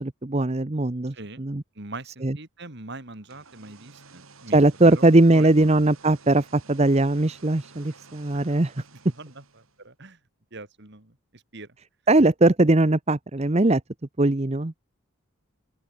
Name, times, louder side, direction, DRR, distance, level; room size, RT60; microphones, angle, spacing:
voice 1, 0.0-1.6 2.2-2.4 4.5-8.7 12.1-13.8 14.2-14.7, right 2 dB, 30° right, 0.8 m, -20 dB
voice 2, 1.1-1.5 1.8-5.8 8.3-8.6 9.1-10.2 10.5-11.8, right 2 dB, 50° right, 2.3 m, -42 dB
sound 1, 3.1-9.9, right 4 dB, 70° right, 3.7 m, -52 dB
open air
head